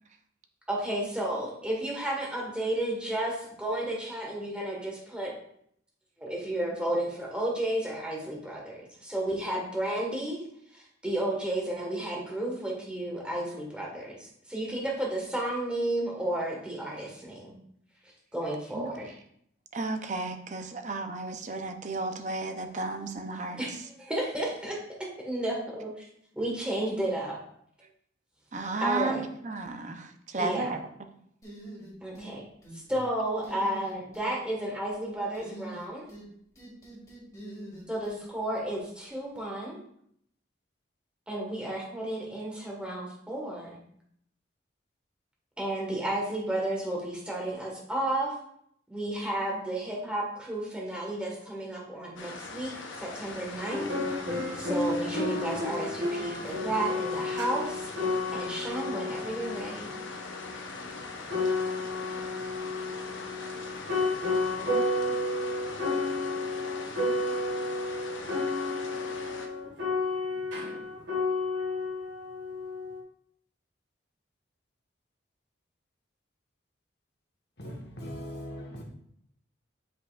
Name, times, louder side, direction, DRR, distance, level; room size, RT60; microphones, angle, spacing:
voice 1, 0.7-5.3 6.2-10.4 10.7-17.5 18.3-19.1 23.6-23.7 24.0-25.9 26.3-27.4 28.8-29.2 30.4-30.7 32.0-32.4 32.7-36.1 37.9-39.8 41.3-43.8 45.6-48.4 48.9-54.2 54.5-60.0, right 1 dB, 5° right, 1.5 m, -32 dB
voice 2, 19.7-23.8 28.5-30.8, right 3 dB, 40° right, 0.6 m, -33 dB
sound 1, 31.4-32.3 32.6-33.1 33.4-34.3 35.3-36.3 36.5-38.2, right 1 dB, 15° left, 2.1 m, -44 dB
sound 2, 52.2-69.5, left 3 dB, 85° left, 0.8 m, -42 dB
sound 3, 53.7-73.0, left 2 dB, 75° right, 1.7 m, -32 dB
voice 3, 77.6-78.8, equal, 55° left, 1.4 m, -40 dB
7.5 x 5.3 x 2.4 m
head